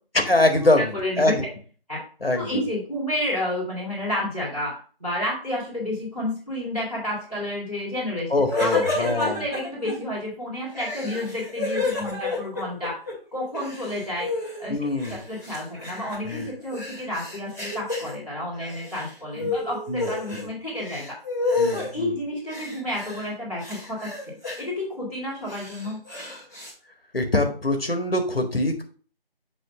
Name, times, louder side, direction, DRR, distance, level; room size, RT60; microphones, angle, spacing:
voice 1, 0.1-1.3 2.2-2.6 8.3-9.4 12.0-12.1 14.7-15.2 16.2-16.5 19.4-19.5 19.9-20.5 21.6-22.2 27.1-28.8, left 2 dB, 75° left, 5 dB, 1.6 m, -24 dB
voice 2, 0.9-1.4 1.9-2.0 2.4-4.7 5.0-13.0 13.3-14.3 14.6-14.8 15.1-21.1 21.7-24.1 24.6-26.0, left 1 dB, ahead, -27 dB, 1.8 m, -30 dB
sound 1, 8.5-9.9 10.7-13.1 13.4-14.6 15.0-18.1 18.5-19.1 19.4-20.5 20.7-21.9 22.5-23.3 23.6-24.6 25.2-26.7, left 3 dB, 20° left, 1.9 m, -30 dB
7.5 x 3.0 x 5.7 m, 0.41 s
figure-of-eight pair, 175°, 30 cm